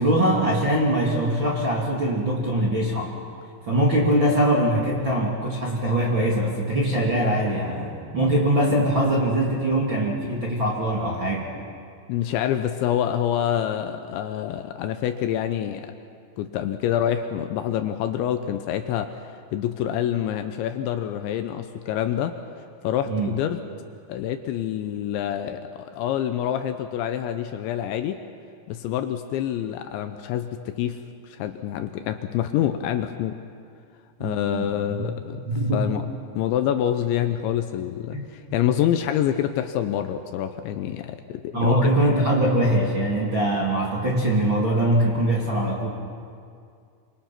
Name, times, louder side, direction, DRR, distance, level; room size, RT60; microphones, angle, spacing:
voice 1, 0.0-3.1 3.7-11.5 23.1-23.3 34.2-35.1 35.4-35.9 38.1-38.2 41.5-45.9, right 1 dB, 35° right, -4 dB, 2.1 m, -22 dB
voice 2, 12.1-15.9 16.4-19.1 19.5-22.4 22.8-23.6 24.1-28.2 28.7-31.0 31.3-33.4 34.2-35.4 35.7-36.0 36.3-41.9, left 10 dB, 80° left, 8 dB, 2.9 m, -26 dB
26.5 x 26.0 x 5.9 m, 2.3 s
omnidirectional pair, 5.8 m